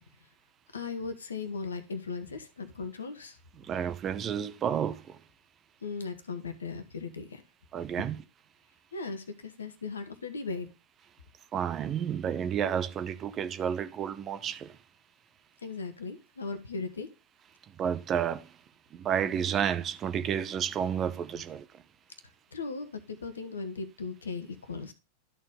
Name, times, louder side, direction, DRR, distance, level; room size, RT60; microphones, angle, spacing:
voice 1, 0.7-3.4 5.8-7.4 8.9-10.7 15.6-17.1 22.5-24.9, left 4 dB, 70° left, 1.2 m, -37 dB
voice 2, 3.6-5.2 7.7-8.2 11.5-14.8 17.8-18.5 18.9-21.8, right 8 dB, 30° right, 0.7 m, -31 dB
12.5 x 4.4 x 3.6 m
figure-of-eight pair, 90°, 0 cm